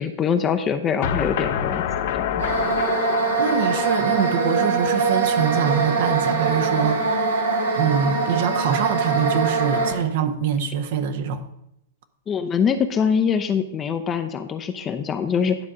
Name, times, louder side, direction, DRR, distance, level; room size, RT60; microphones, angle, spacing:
voice 1, 0.0-1.8 2.1-2.3 12.3-15.6, left 7 dB, 25° left, 8 dB, 0.6 m, -23 dB
sound 1, 1.0-6.0, left 9 dB, 60° left, 0.8 m, -28 dB
sound 2, 2.4-9.9, right 4 dB, 85° right, 1.8 m, -23 dB
voice 2, 3.4-7.4 7.8-11.4, right 8 dB, 60° right, 9 dB, 0.9 m, -24 dB
11.0 x 3.6 x 6.1 m, 0.80 s
hypercardioid pair, 120°, 0 cm